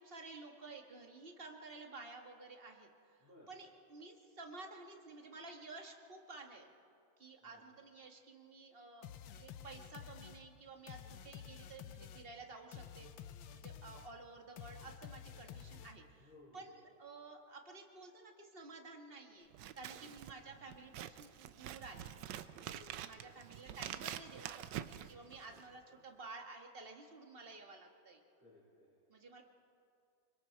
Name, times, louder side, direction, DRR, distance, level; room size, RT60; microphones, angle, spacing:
voice 1, 0.0-6.7 7.2-13.1 13.6-22.1 22.9-28.2 29.1-29.4, right 3 dB, 30° right, 3 dB, 1.7 m, -53 dB
voice 2, 3.2-3.5 7.4-7.6 16.2-16.7 19.8-20.2 22.5-23.7 25.5-25.7 28.4-28.9, left 2 dB, 5° right, -7 dB, 4.8 m, -63 dB
sound 1, 9.0-16.2, left 8 dB, 75° left, 1.4 m, -52 dB
Scissors, 19.5-25.8, right 11 dB, 70° right, 1.3 m, -47 dB
25.5 x 23.5 x 4.6 m, 2.4 s
omnidirectional pair, 2.2 m